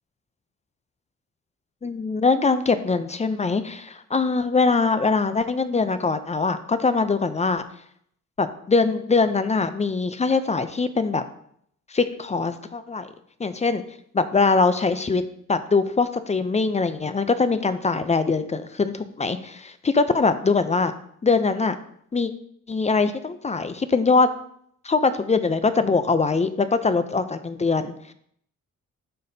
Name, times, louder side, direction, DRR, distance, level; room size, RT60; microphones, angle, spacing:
voice 1, 1.8-7.6 8.4-11.2 11.9-13.1 13.4-13.8 14.1-15.2 15.5-20.9 21.2-21.8 22.1-22.3 22.7-24.3 24.8-28.1, left 4 dB, 20° left, 11 dB, 0.5 m, -22 dB
11.5 x 4.1 x 2.7 m, 0.66 s
cardioid pair, 100°, 31 cm